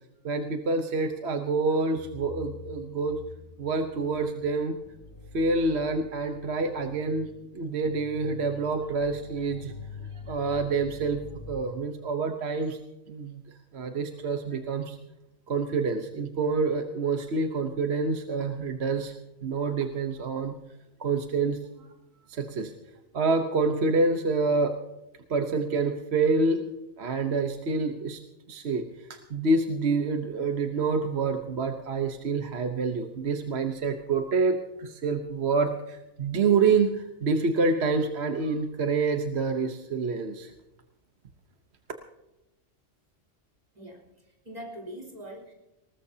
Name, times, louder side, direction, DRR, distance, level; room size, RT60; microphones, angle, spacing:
voice 1, 0.2-3.2 3.6-4.8 5.3-9.7 10.1-12.8 13.1-13.4 13.7-15.0 15.5-19.2 19.4-20.5 21.0-21.7 22.3-22.7 23.1-24.8 25.3-26.7 27.0-28.2 28.5-40.5, right 4 dB, 55° right, 5 dB, 1.2 m, -27 dB
sound 1, 1.9-11.6, left 4 dB, 40° left, 3.6 m, -46 dB
voice 2, 43.7-45.5, equal, 30° right, 0 dB, 3.8 m, -43 dB
20.0 x 19.5 x 2.8 m, 0.95 s
omnidirectional pair, 1.3 m